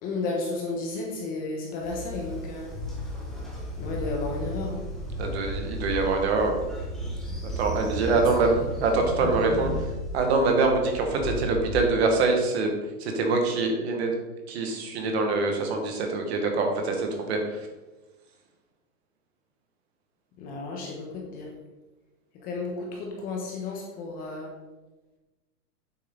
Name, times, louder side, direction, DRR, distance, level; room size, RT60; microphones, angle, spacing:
voice 1, 0.0-2.7 3.8-4.8 8.0-8.5 20.4-21.5 22.3-24.5, left 3 dB, 20° left, 0 dB, 1.1 m, -33 dB
Train, 1.8-11.8, equal, ahead, 0.5 m, -34 dB
voice 2, 5.2-6.6 7.6-8.5 8.8-9.7 10.1-12.7 13.0-14.2 14.5-17.7, right 3 dB, 45° right, 3 dB, 1.8 m, -24 dB
9.1 x 7.7 x 3.9 m, 1.1 s
supercardioid pair, 170°, 46 cm